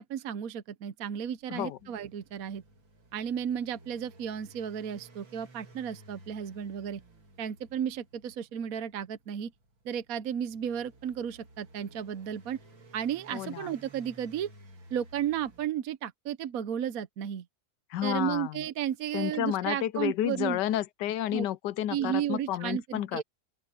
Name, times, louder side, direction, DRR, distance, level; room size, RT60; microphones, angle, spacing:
voice 1, 0.0-2.6 3.1-7.0 7.4-9.5 9.8-12.6 12.9-14.5 14.9-17.4 18.0-20.6 21.3-21.4 21.9-23.2, right 9 dB, 60° right, 1.1 m, -33 dB
sound 1, 1.2-15.7, right 2 dB, 80° right, 3.7 m, -55 dB
voice 2, 1.5-1.9 13.3-13.7 17.9-18.6 19.1-23.2, left 12 dB, 75° left, 1.2 m, -31 dB
open air
omnidirectional pair, 2.0 m